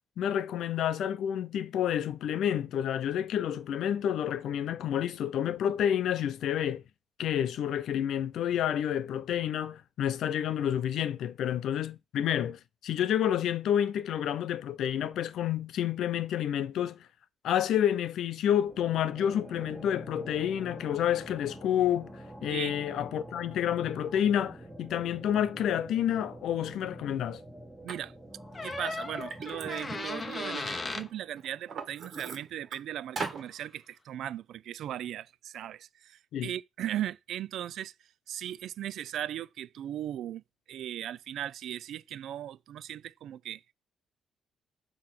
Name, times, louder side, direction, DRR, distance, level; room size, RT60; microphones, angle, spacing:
voice 1, 0.2-6.8 7.2-17.0 17.4-27.4 36.3-36.5, left 10 dB, 75° left, 0.6 m, -29 dB
sound 1, 18.5-31.6, right 1 dB, 5° right, 1.5 m, -47 dB
Liquid, 27.9-28.0 28.5-30.9 31.4-32.8 33.2-33.4, right 5 dB, 50° right, 1.6 m, -40 dB
sound 2, 28.5-31.1 33.2-33.4, left 3 dB, 25° left, 0.8 m, -36 dB
voice 2, 28.6-37.9 38.3-40.4 40.7-43.6, right 11 dB, 70° right, 0.4 m, -38 dB
7.6 x 3.1 x 5.9 m
cardioid pair, 125°, 0 cm